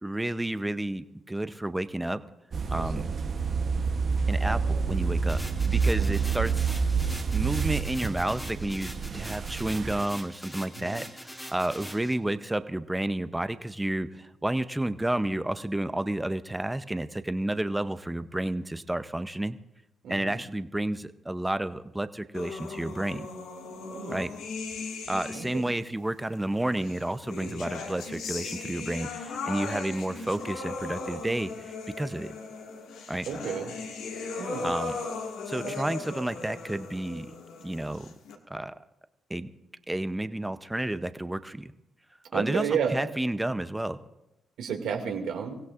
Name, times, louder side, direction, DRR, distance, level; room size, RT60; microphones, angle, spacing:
voice 1, 0.0-2.2 2.7-3.0 4.3-6.7 7.3-19.6 20.1-23.3 24.1-24.3 25.1-32.3 33.1-33.3 34.6-34.9 35.5-37.3 37.6-38.1 38.5-38.7 39.3-39.5 39.9-41.7 42.3-44.0, right 1 dB, 10° right, 12 dB, 0.6 m, -31 dB
sound 1, 2.5-10.0, right 5 dB, 45° right, 0.9 m, -28 dB
voice 2, 2.8-3.1 6.0-6.2 10.8-11.0 20.0-20.4 23.9-24.2 25.3-25.6 27.4-27.6 33.3-33.7 34.4-34.7 35.6-35.8 42.3-43.0 44.6-45.5, right 7 dB, 75° right, 2 dB, 2.2 m, -32 dB
sound 2, 5.3-12.1, equal, 5° left, 1.9 m, -43 dB
sound 3, 22.3-25.8 26.8-38.4, left 4 dB, 85° left, 1.9 m, -38 dB
25.0 x 16.0 x 2.5 m, 0.91 s
cardioid pair, 90°, 0 cm